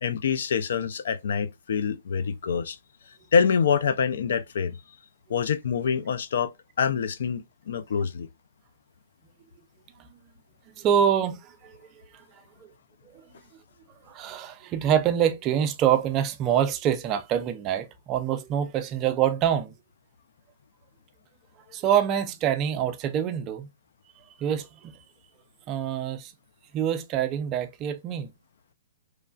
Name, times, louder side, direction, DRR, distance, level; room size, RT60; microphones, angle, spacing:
voice 1, 0.0-2.8 3.3-4.8 5.3-6.5 6.8-8.3, left 6 dB, 70° left, 0.4 m, -25 dB
voice 2, 10.8-11.4 11.6-11.8 14.1-19.7 21.7-23.7 24.4-24.9 25.7-26.3 26.7-28.3, right 9 dB, 25° right, 0.3 m, -25 dB
3.1 x 2.4 x 2.2 m
hypercardioid pair, 155°, 0 cm